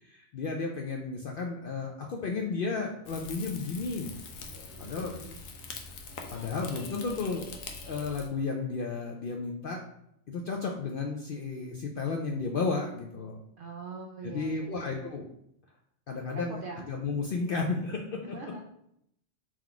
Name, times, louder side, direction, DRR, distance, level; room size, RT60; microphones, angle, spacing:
voice 1, 0.0-4.1 4.5-5.2 6.3-7.6 7.8-9.8 10.3-13.4 14.2-15.3 16.1-18.4, left 4 dB, 65° left, 1 dB, 0.5 m, -33 dB
Rain / Fire, 3.1-8.3, left 4 dB, 85° left, 1.1 m, -43 dB
voice 2, 4.7-5.4 13.6-14.9 16.3-16.8 18.2-18.6, right 3 dB, 60° right, 1 dB, 0.6 m, -43 dB
3.9 x 3.1 x 4.5 m, 0.76 s
omnidirectional pair, 1.3 m